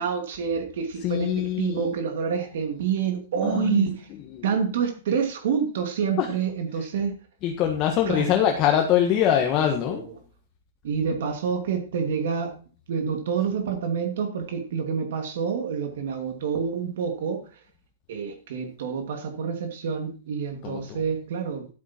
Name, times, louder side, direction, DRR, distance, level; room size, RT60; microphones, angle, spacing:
voice 1, 0.0-1.3 1.6-4.1 4.4-7.1 8.1-8.3 9.9-10.1 10.8-12.5 12.9-17.6 18.1-21.7, right 6 dB, 55° right, 4 dB, 2.6 m, -27 dB
voice 2, 1.0-1.9 3.4-3.9 4.3-4.4 6.2-6.3 7.4-10.0 20.6-21.0, left 10 dB, 25° left, 3 dB, 1.5 m, -23 dB
12.5 x 9.3 x 4.5 m, 0.37 s
supercardioid pair, 170°, 0 cm